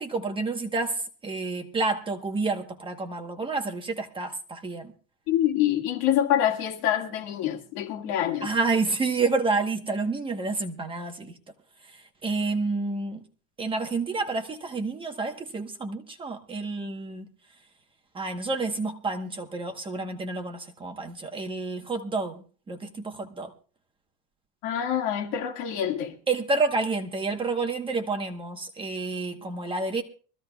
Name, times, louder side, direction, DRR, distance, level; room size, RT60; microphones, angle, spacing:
voice 1, 0.0-4.9 8.4-11.4 11.8-13.2 13.6-17.3 18.1-23.5 26.3-30.0, right 3 dB, 15° right, 1.1 m, -29 dB
voice 2, 5.3-8.5 24.6-26.1, left 10 dB, 70° left, 2.0 m, -26 dB
23.5 x 15.0 x 2.3 m
cardioid pair, 170°, 33 cm